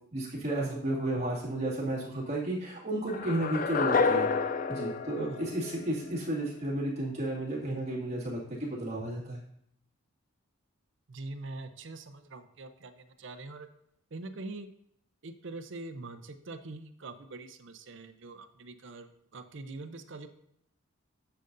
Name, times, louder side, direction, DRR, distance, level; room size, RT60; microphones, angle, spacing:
voice 1, 0.1-4.3 4.7-9.4, right 1 dB, 30° right, -5 dB, 2.1 m, -33 dB
sound 1, 3.1-6.2, left 4 dB, 40° left, 0.3 m, -29 dB
voice 2, 11.1-13.7 14.1-14.7 15.2-20.3, right 2 dB, 55° right, 9 dB, 0.6 m, -43 dB
10.0 x 6.7 x 2.6 m, 0.72 s
head